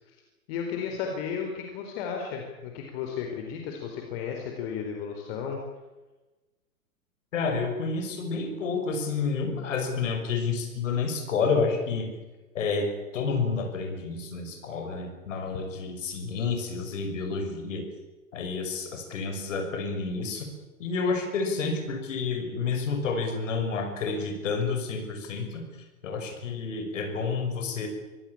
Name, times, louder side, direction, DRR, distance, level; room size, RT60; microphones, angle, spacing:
voice 1, 0.5-5.6, left 6 dB, 40° left, 3 dB, 4.3 m, -34 dB
voice 2, 7.3-12.1 12.5-17.8 18.3-20.5 20.8-25.7 26.0-27.9, left 4 dB, 60° left, 5 dB, 6.2 m, -29 dB
24.5 x 18.0 x 8.8 m, 1.2 s
figure-of-eight pair, 105°, 43 cm